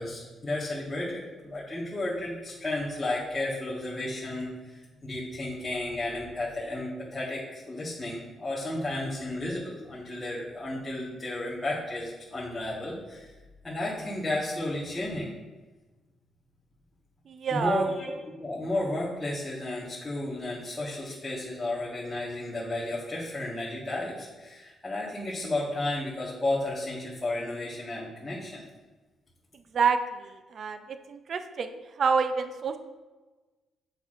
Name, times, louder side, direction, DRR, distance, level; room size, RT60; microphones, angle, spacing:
voice 1, 0.0-13.3 13.6-15.3 17.5-18.1 18.4-28.6, left 1 dB, 15° left, -8 dB, 1.3 m, -33 dB
voice 2, 17.3-17.9 29.7-30.8 31.1-32.8, right 5 dB, 55° right, 9 dB, 0.4 m, -28 dB
6.7 x 6.1 x 2.5 m, 1.2 s
cardioid pair, 90°, 0 cm